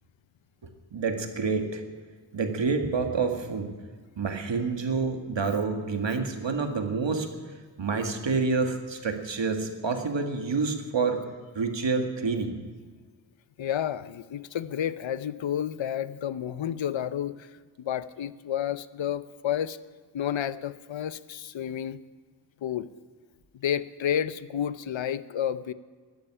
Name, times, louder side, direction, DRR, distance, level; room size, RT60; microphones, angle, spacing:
voice 1, 0.9-2.0 2.3-3.7 4.2-7.3 7.8-11.2 11.6-12.6, right 4 dB, 70° right, 5 dB, 2.0 m, -28 dB
voice 2, 13.6-19.8 20.1-22.0 22.6-22.9 23.5-25.7, left 9 dB, 80° left, 15 dB, 0.7 m, -31 dB
14.0 x 10.5 x 9.9 m, 1.5 s
wide cardioid pair, 85°, 45 cm